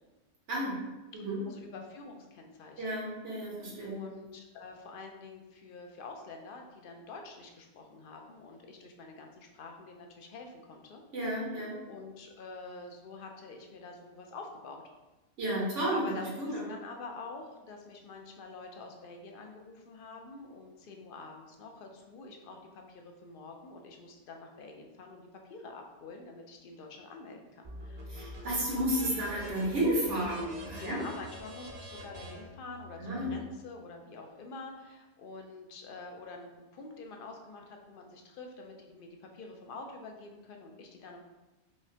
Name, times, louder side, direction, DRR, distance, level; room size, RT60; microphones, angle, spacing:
voice 1, 0.5-0.8 1.1-1.4 2.8-3.9 11.1-11.7 15.4-16.6 28.1-31.0 33.0-33.3, right 1 dB, 85° right, -4 dB, 1.4 m, -32 dB
voice 2, 1.1-3.0 3.8-11.0 11.9-14.8 15.9-28.4 30.7-41.2, left 3 dB, 60° left, 2 dB, 0.6 m, -47 dB
sound 1, 27.6-33.3, equal, 40° right, 0.5 m, -45 dB
4.8 x 2.1 x 2.7 m, 1.1 s
omnidirectional pair, 1.2 m